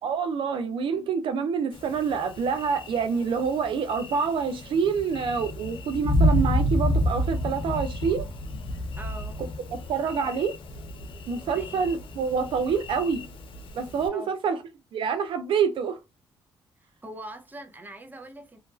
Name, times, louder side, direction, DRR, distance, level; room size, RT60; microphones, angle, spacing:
voice 1, 0.0-8.3 9.4-9.5 9.9-10.6 11.3-13.3 13.7-14.6 14.9-16.0, right 6 dB, 70° right, 0.4 m, -27 dB
Thunder, 1.7-14.1, left 1 dB, 70° left, 0.7 m, -30 dB
voice 2, 9.0-9.4 11.5-11.9 14.1-14.3 16.8-18.6, right 1 dB, 20° right, 0.7 m, -42 dB
2.8 x 2.4 x 2.4 m
cardioid pair, 65°, 9 cm